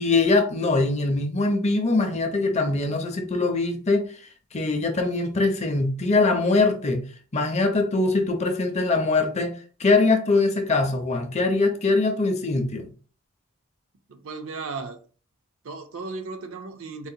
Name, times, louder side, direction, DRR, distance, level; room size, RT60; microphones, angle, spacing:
voice 1, 0.0-7.0 7.3-12.9, left 3 dB, 30° left, 0.5 m, -22 dB
voice 2, 14.1-15.0 15.6-17.1, right 4 dB, 65° right, 0.5 m, -35 dB
4.0 x 2.1 x 2.6 m
head